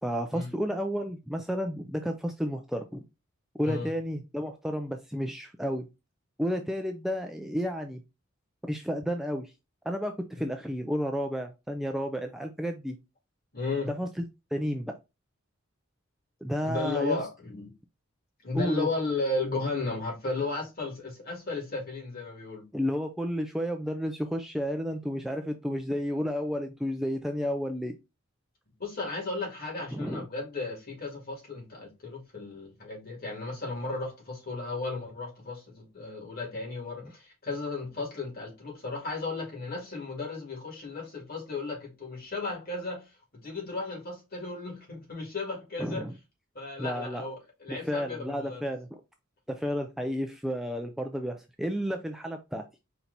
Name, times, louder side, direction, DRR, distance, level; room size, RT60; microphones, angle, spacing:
voice 1, 0.0-3.0 3.6-5.9 6.4-8.0 8.6-9.5 9.9-13.0 13.9-14.2 14.5-14.9 16.4-17.2 18.5-18.9 22.7-28.0 29.9-30.2 45.8-46.1 46.8-47.2 47.7-48.9 49.5-52.6, equal, ahead, 0.3 m, -31 dB
voice 2, 13.5-13.9 16.6-17.7 18.4-22.6 28.8-46.0 46.5-48.6, left 3 dB, 45° left, 2.2 m, -34 dB
4.5 x 2.8 x 3.9 m
head